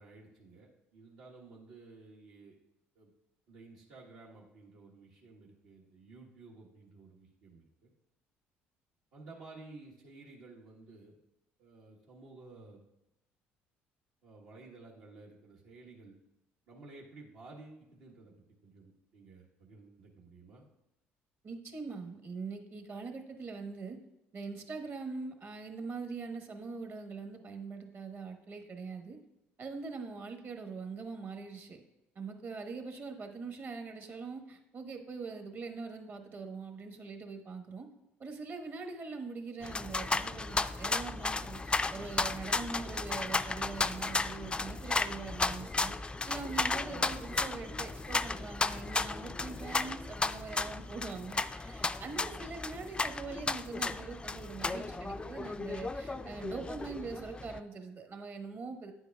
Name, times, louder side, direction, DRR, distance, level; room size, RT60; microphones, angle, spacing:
voice 1, 0.0-2.6 2.9-3.1 3.5-7.9 9.1-11.1 11.6-12.8 14.2-16.1 16.7-18.3 18.6-20.6, right 3 dB, 75° right, -5 dB, 1.2 m, -53 dB
voice 2, 21.4-24.0 24.3-29.2 29.6-31.8 32.1-37.9 38.2-58.9, right 4 dB, 45° right, 4 dB, 1.2 m, -43 dB
sound 1, 39.6-57.6, left 3 dB, 20° left, 0.3 m, -34 dB
9.3 x 8.0 x 2.3 m, 0.88 s
supercardioid pair, 75°, 5 cm